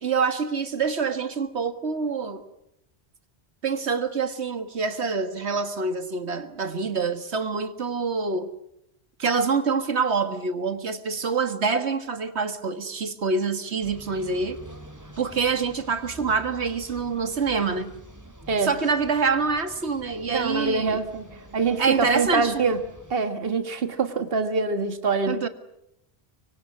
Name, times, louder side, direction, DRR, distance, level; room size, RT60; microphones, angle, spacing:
voice 1, 0.0-2.4 3.6-8.5 9.2-14.6 15.2-17.9 18.6-21.0 21.8-22.6 25.3-25.5, right 5 dB, 85° right, 9 dB, 1.9 m, -26 dB
sound 1, 13.8-23.2, right 1 dB, 15° right, 3.4 m, -46 dB
voice 2, 20.3-21.3 21.5-22.8 23.1-25.4, right 4 dB, 60° right, 9 dB, 1.8 m, -25 dB
25.0 x 24.0 x 8.3 m, 0.80 s
omnidirectional pair, 1.1 m